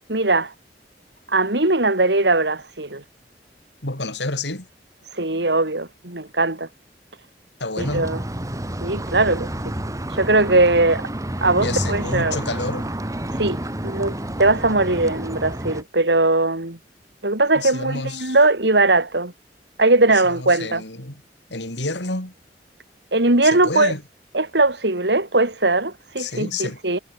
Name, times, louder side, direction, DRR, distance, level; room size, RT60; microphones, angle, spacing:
voice 1, 0.1-0.5 1.3-3.0 5.2-6.7 7.8-8.2 8.8-9.5 10.1-11.1 11.4-12.4 13.4-13.6 13.8-16.8 17.2-19.3 19.8-20.8 23.1-23.9 24.3-27.0, right 2 dB, 75° right, 3.5 m, -20 dB
voice 2, 3.8-4.7 7.6-8.1 11.6-12.9 17.5-18.4 20.2-21.2 21.5-22.3 23.4-24.0 26.2-27.0, left 2 dB, 90° left, 6.4 m, -29 dB
sound 1, 7.8-15.8, right 1 dB, 20° right, 1.9 m, -29 dB
head